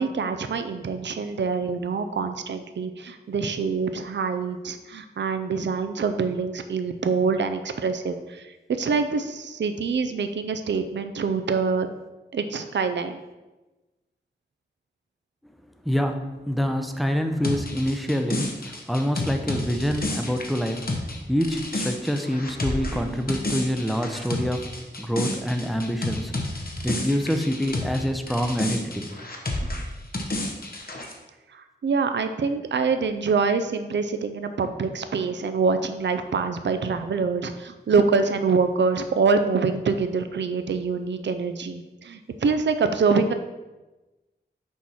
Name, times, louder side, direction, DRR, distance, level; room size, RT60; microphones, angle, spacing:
voice 1, 0.0-11.9 12.3-13.2 22.9-23.0 31.5-43.3, right 5 dB, 75° right, 8 dB, 0.4 m, -25 dB
voice 2, 15.8-24.7 25.0-26.4 26.8-29.1 29.6-29.7, equal, ahead, 6 dB, 0.6 m, -26 dB
sound 1, 17.4-28.0 28.3-31.1, left 2 dB, 55° left, 1.0 m, -30 dB
6.3 x 3.0 x 5.5 m, 1.1 s
wide cardioid pair, 70°, 19 cm